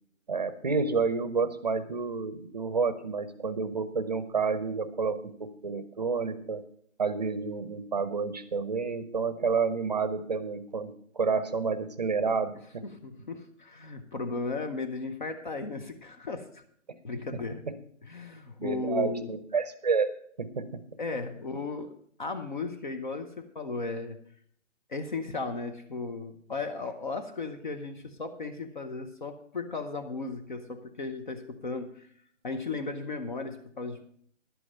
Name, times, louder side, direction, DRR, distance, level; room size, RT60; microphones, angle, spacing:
voice 1, 0.3-6.6 7.0-12.9 17.7-17.8 18.6-20.1 20.4-20.8, right 5 dB, 35° right, 14 dB, 0.7 m, -29 dB
voice 2, 12.9-16.6 17.0-17.6 18.0-19.3 21.0-21.9 22.2-24.2 24.9-32.1 32.4-34.0, left 3 dB, 40° left, 8 dB, 0.9 m, -35 dB
11.5 x 8.4 x 5.4 m, 0.62 s
hypercardioid pair, 165°, 37 cm